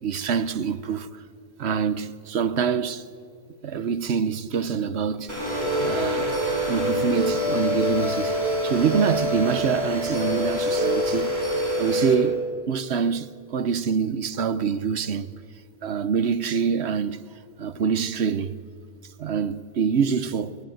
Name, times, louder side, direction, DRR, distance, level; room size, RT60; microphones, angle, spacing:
voice 1, 0.0-1.2 1.6-3.1 3.6-5.3 5.8-6.3 6.7-8.3 8.6-11.4 11.8-15.3 15.8-17.2 17.6-18.5 19.2-20.6, right 6 dB, 90° right, 1.2 m, -25 dB
sound 1, 5.3-12.1, equal, 45° right, 4.9 m, -25 dB
25.5 x 22.5 x 7.8 m
omnidirectional pair, 1.1 m